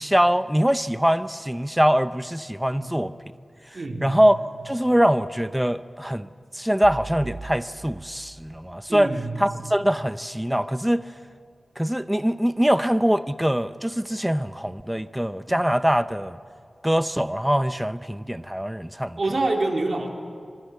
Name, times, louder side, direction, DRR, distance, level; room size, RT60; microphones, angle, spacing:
voice 1, 0.0-3.1 3.7-6.3 6.5-11.1 11.8-16.4 16.8-19.2, equal, 5° right, 13 dB, 0.6 m, -23 dB
voice 2, 3.7-4.2 8.9-9.4 19.2-20.1, right 2 dB, 50° right, 2 dB, 3.2 m, -26 dB
sound 1, 6.8-8.9, right 3 dB, 85° right, 1.6 m, -40 dB
25.5 x 23.0 x 8.0 m, 2.2 s
wide cardioid pair, 85°, 0 cm